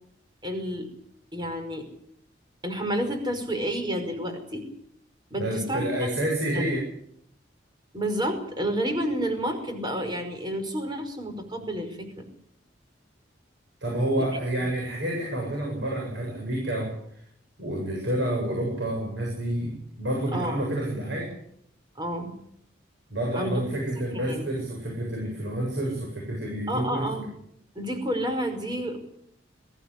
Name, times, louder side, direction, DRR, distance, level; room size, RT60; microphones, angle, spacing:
voice 1, 0.4-0.9 1.3-1.8 2.6-4.7 5.3-6.2 6.5-6.6 7.9-12.3 14.2-14.3 20.3-20.6 22.0-22.3 23.3-23.6 24.1-24.5 26.7-27.3 27.8-29.0, equal, 25° right, 6 dB, 5.4 m, -30 dB
voice 2, 5.4-6.9 13.8-17.0 17.6-21.3 23.1-27.1, right 1 dB, 65° right, -1 dB, 8.0 m, -29 dB
22.0 x 16.0 x 9.9 m, 0.70 s
head